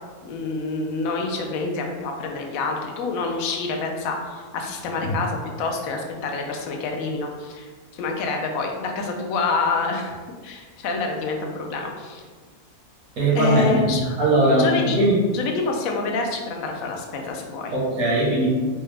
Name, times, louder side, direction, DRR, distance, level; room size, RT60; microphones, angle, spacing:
voice 1, 0.2-10.1 10.4-12.2 13.3-14.2 14.5-15.0 15.3-17.7, left 3 dB, 75° left, 2 dB, 1.0 m, -27 dB
voice 2, 13.2-13.9 14.2-15.2 17.7-18.5, right 1 dB, 75° right, -6 dB, 1.6 m, -19 dB
4.7 x 2.1 x 3.2 m, 1.5 s
omnidirectional pair, 1.5 m